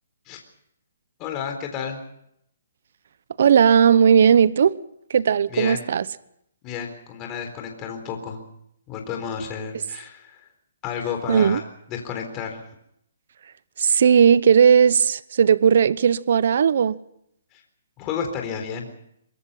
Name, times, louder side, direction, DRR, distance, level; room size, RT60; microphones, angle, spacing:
voice 1, 1.2-2.0 5.5-5.8 6.6-8.4 8.9-10.4 10.8-11.6 11.9-12.6 18.0-18.9, left 7 dB, 20° left, 4.0 m, -31 dB
voice 2, 3.4-4.7 5.1-6.0 11.3-11.6 13.8-17.0, right 7 dB, 60° right, 0.9 m, -16 dB
24.5 x 21.5 x 5.7 m
hypercardioid pair, 160°, 0 cm